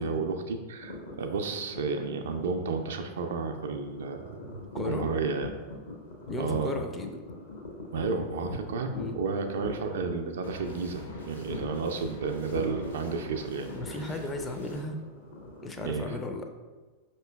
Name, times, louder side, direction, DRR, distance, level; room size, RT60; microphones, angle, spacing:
voice 1, 0.0-5.5 6.4-6.8 7.9-13.7 14.0-14.1 15.8-16.1, right 4 dB, 60° right, 5 dB, 0.4 m, -32 dB
sound 1, 0.7-15.9, left 2 dB, 60° left, 0.7 m, -42 dB
voice 2, 4.7-5.0 6.3-7.1 8.9-9.1 13.7-15.0 15.6-16.5, left 2 dB, 15° left, 4 dB, 0.4 m, -35 dB
sound 2, 10.4-14.8, left 2 dB, 80° left, 1.1 m, -47 dB
5.4 x 2.9 x 2.2 m, 1.3 s
figure-of-eight pair, 90°, 0 cm